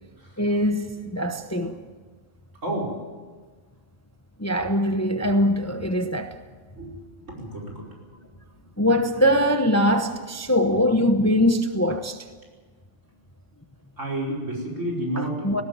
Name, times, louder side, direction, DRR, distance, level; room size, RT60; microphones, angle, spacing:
voice 1, 0.4-1.8 4.4-6.3 8.8-12.2 15.2-15.6, equal, 15° left, 0.9 m, -22 dB
voice 2, 7.3-7.8 14.0-15.6, right 1 dB, 65° right, 5.6 m, -30 dB
19.0 x 17.0 x 9.4 m
omnidirectional pair, 1.4 m